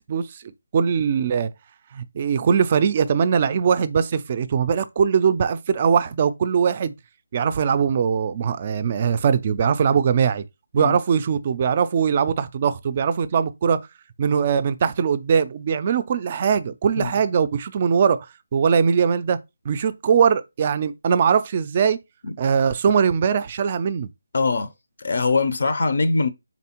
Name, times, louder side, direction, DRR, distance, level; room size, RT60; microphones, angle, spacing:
voice 1, 0.1-0.4 0.7-1.5 1.9-6.9 7.3-10.4 10.7-13.8 14.2-18.2 18.5-19.4 19.7-22.0 22.4-24.1, right 7 dB, 30° right, 0.3 m, -21 dB
voice 2, 24.3-24.7 25.0-26.3, left 3 dB, 60° left, 0.5 m, -22 dB
4.1 x 3.4 x 2.9 m
figure-of-eight pair, 165°, 0 cm